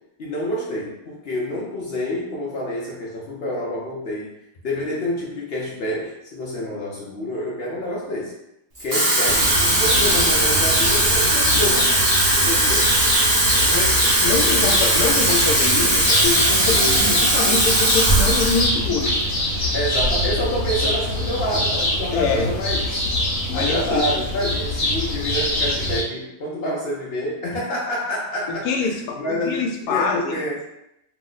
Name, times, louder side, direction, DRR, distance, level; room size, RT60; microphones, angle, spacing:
voice 1, 0.2-4.3 4.6-8.3 8.8-11.8 12.4-13.0 19.7-23.0 23.5-30.6, left 1 dB, 65° left, -4 dB, 0.6 m, -28 dB
Water tap faucet / Fill (with liquid), 8.8-18.7 19.1-19.3, right 1 dB, 40° right, 0.6 m, -19 dB
sound 1, 9.2-26.0, left 1 dB, 40° left, 1.1 m, -24 dB
voice 2, 13.6-19.2 22.1-22.5 23.5-24.1 28.6-30.5, left 4 dB, 80° left, 2 dB, 1.1 m, -25 dB
2.9 x 2.0 x 3.7 m, 0.86 s
omnidirectional pair, 1.6 m